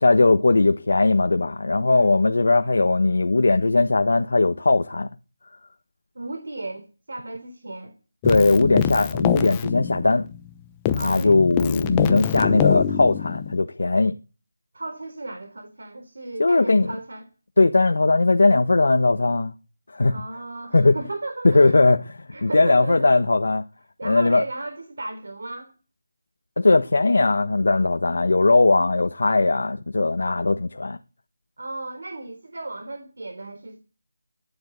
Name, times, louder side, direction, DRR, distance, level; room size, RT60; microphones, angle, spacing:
voice 1, 0.0-5.1 8.2-10.2 11.0-14.1 16.4-16.9 17.6-19.5 19.9-20.1 20.7-21.0 21.4-22.0 22.4-23.6 24.0-24.4 26.6-31.0, left 3 dB, 70° left, 1.3 m, -19 dB
voice 2, 1.9-2.2 6.1-7.9 10.9-11.4 14.7-17.2 20.1-21.8 22.3-23.1 24.0-25.7 31.6-33.8, right 2 dB, 65° right, 4.1 m, -35 dB
Keyboard (musical), 8.2-10.5 10.9-13.6, left 9 dB, 10° left, 0.8 m, -25 dB
16.5 x 10.5 x 8.3 m
figure-of-eight pair, 175°, 0 cm